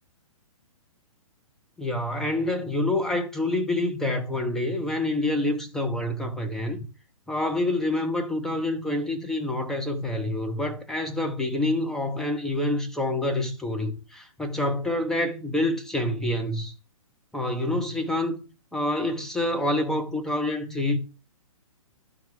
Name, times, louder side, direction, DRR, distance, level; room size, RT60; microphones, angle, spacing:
voice 1, 1.8-6.8 7.3-16.7 17.3-18.4 18.7-21.0, left 1 dB, ahead, 1.0 m, -27 dB
12.0 x 4.3 x 3.5 m
figure-of-eight pair, 125°, 18 cm